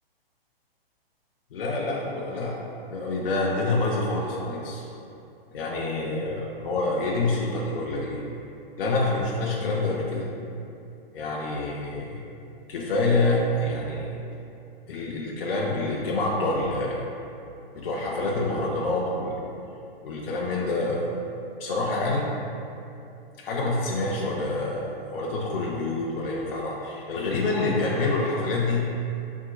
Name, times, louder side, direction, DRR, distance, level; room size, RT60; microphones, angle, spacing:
voice 1, 1.5-2.6 2.9-4.8 5.5-8.2 8.8-10.3 11.1-12.2 12.7-14.1 14.9-17.0 17.7-19.4 20.0-21.0 21.6-22.3 23.4-28.9, left 2 dB, 65° left, -4 dB, 0.7 m, -27 dB
5.9 x 3.6 x 2.2 m, 2.7 s
hypercardioid pair, 160°, 30 cm